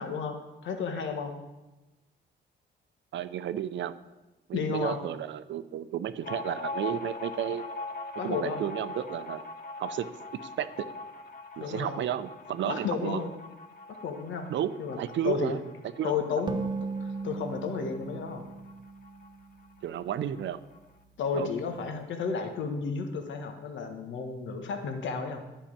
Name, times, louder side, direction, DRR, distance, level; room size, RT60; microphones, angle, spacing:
voice 1, 0.0-1.3 4.5-5.0 8.2-8.6 11.6-12.0 12.6-13.3 13.9-14.5 14.8-15.0 15.2-15.5 16.0-16.6 17.0-18.4 21.2-25.4, left 5 dB, 70° left, 5 dB, 1.5 m, -32 dB
voice 2, 3.1-3.9 4.5-7.6 8.2-9.4 9.8-10.1 10.4-10.7 11.6-13.2 14.5-15.6 16.0-16.4 19.8-20.6 21.3-21.5, right 10 dB, 70° right, 13 dB, 0.7 m, -32 dB
sound 1, 6.2-19.4 19.6-19.7 20.0-20.8, left 3 dB, 50° left, 1.1 m, -42 dB
sound 2, 16.5-20.0, right 4 dB, 20° right, 0.9 m, -37 dB
10.5 x 5.7 x 8.7 m, 1.1 s
cardioid pair, 90°, 20 cm